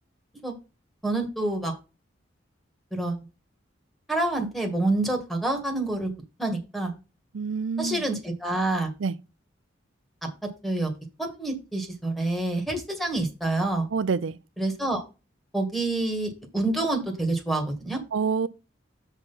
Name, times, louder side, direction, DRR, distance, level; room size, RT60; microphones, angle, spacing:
voice 1, 1.0-1.7 2.9-3.2 4.1-6.9 7.8-8.9 10.2-10.9 11.2-13.9 14.6-15.0 15.5-18.0, right 2 dB, ahead, 2.0 m, -27 dB
voice 2, 7.3-8.0 9.0-9.2 13.9-14.4 18.1-18.5, right 5 dB, 90° right, 0.5 m, -27 dB
6.6 x 4.6 x 5.7 m
head